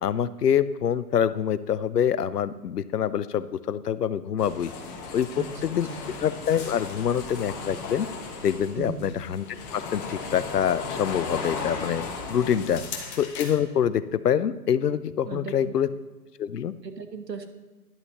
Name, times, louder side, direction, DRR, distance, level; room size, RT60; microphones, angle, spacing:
voice 1, 0.0-4.7 5.1-5.9 6.2-8.1 8.4-9.5 9.7-12.0 12.3-12.8 13.2-15.9 16.4-16.7, left 8 dB, 70° left, 15 dB, 0.7 m, -25 dB
sound 1, 4.4-13.6, left 4 dB, 20° left, 1.2 m, -36 dB
voice 2, 8.7-9.1 12.6-12.9 15.3-15.7 16.8-17.5, right 5 dB, 80° right, 7 dB, 1.3 m, -37 dB
12.0 x 10.5 x 3.0 m, 1.2 s
figure-of-eight pair, 125°, 49 cm